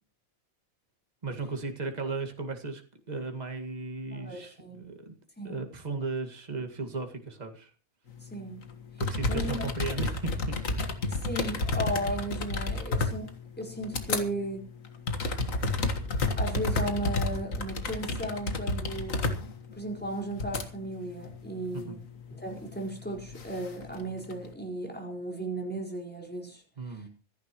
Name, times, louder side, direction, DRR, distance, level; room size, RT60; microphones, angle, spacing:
voice 1, 1.2-2.8 3.1-5.1 5.4-7.7 9.0-10.8 21.7-22.0 26.8-27.1, right 4 dB, 30° right, 3 dB, 2.1 m, -36 dB
voice 2, 4.1-4.8 5.4-5.7 8.2-8.6 9.3-9.7 11.1-13.3 13.6-14.7 16.4-19.4 19.7-22.0 22.3-26.6 26.9-27.0, right 1 dB, 5° left, 1 dB, 4.6 m, -35 dB
sound 1, 8.7-8.8 9.0-14.2 14.7-20.7 21.2-21.7 23.0-24.5, left 2 dB, 65° left, 2.0 m, -30 dB
26.0 x 10.5 x 3.0 m, 0.36 s
omnidirectional pair, 1.5 m